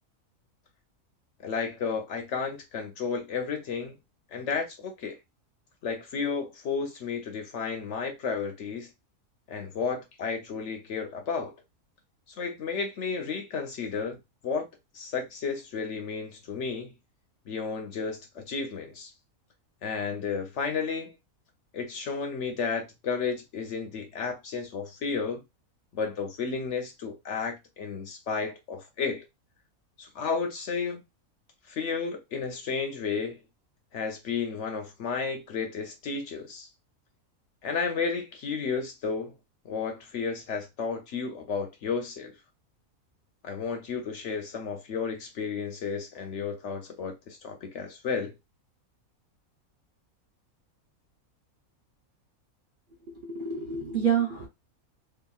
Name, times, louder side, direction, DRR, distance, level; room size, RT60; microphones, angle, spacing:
voice 1, 1.4-3.9 4.3-5.2 5.8-8.9 9.5-11.5 12.4-14.7 14.9-16.9 17.5-19.1 19.8-21.1 21.7-25.4 25.9-29.2 30.0-31.0 31.7-33.4 33.9-36.7 37.6-39.3 39.6-42.3 43.4-48.3, left 5 dB, 60° left, 0.9 m, -32 dB
voice 2, 53.2-54.5, right 7 dB, 50° right, 0.6 m, -27 dB
2.8 x 2.6 x 2.3 m
omnidirectional pair, 1.5 m